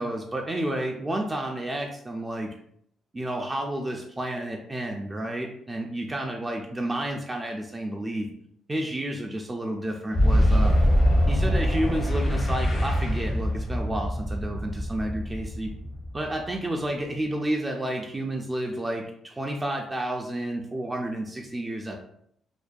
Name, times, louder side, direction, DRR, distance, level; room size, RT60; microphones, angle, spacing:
voice 1, 0.0-2.5 3.1-8.3 8.7-10.8 11.3-15.7 16.1-22.0, right 1 dB, 20° right, 1 dB, 0.3 m, -31 dB
Boom, 10.1-16.7, equal, 55° left, 0.7 m, -24 dB
2.5 x 2.1 x 2.3 m, 0.69 s
cardioid pair, 90°, 0 cm